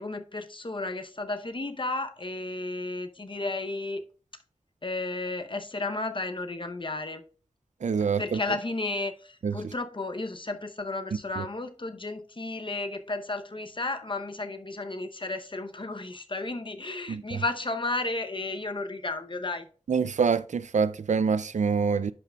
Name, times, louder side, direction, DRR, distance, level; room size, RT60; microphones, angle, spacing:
voice 1, 0.0-4.0 4.8-7.2 8.2-19.7, left 2 dB, 45° left, 0.8 m, -33 dB
voice 2, 7.8-8.4 9.4-9.5 11.4-11.5 17.1-17.4 19.9-22.1, right 6 dB, 85° right, 0.4 m, -26 dB
10.5 x 5.7 x 2.3 m
wide cardioid pair, 60°, 12 cm